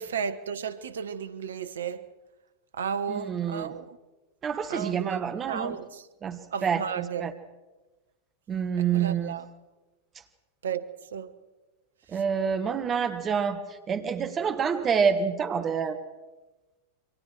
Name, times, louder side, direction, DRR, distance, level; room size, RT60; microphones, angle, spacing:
voice 1, 0.0-2.1 2.7-4.0 4.7-6.1 6.5-7.3 8.8-9.5 10.6-11.3 12.1-12.2, right 7 dB, 65° right, 1.1 m, -34 dB
voice 2, 3.1-3.7 4.4-5.8 6.2-7.3 8.5-9.4 12.1-13.6 13.9-16.0, right 7 dB, 25° right, 1.6 m, -27 dB
28.0 x 24.5 x 4.7 m
figure-of-eight pair, 90°, 0 cm